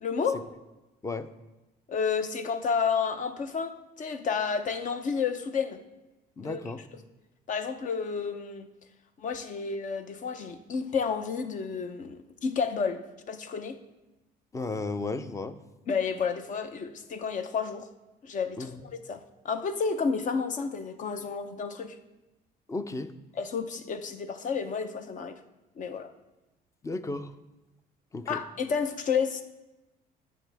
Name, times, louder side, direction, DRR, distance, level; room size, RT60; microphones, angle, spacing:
voice 1, 0.0-0.4 1.9-5.8 6.4-6.6 7.5-8.7 9.2-13.8 15.9-17.9 18.2-22.0 23.3-25.4 25.8-26.1 28.3-29.4, left 5 dB, 50° left, 9 dB, 0.8 m, -31 dB
voice 2, 6.4-6.9 14.5-15.5 18.6-18.8 22.7-23.1 26.8-27.3 28.1-28.4, left 3 dB, 20° left, 12 dB, 0.6 m, -34 dB
12.0 x 7.4 x 3.5 m, 1.0 s
cardioid pair, 110°, 17 cm